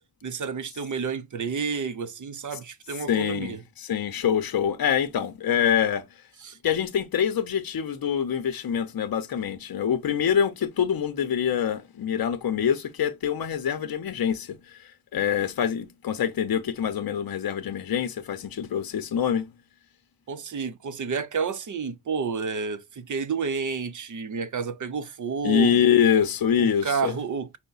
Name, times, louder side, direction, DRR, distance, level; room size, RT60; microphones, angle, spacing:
voice 1, 0.2-3.6 6.4-6.6 20.3-25.9 26.6-27.6, right 5 dB, 50° right, 0.6 m, -30 dB
voice 2, 3.1-6.0 6.6-19.5 25.4-27.1, left 8 dB, 60° left, 0.7 m, -25 dB
5.7 x 2.1 x 3.9 m
wide cardioid pair, 175°, 39 cm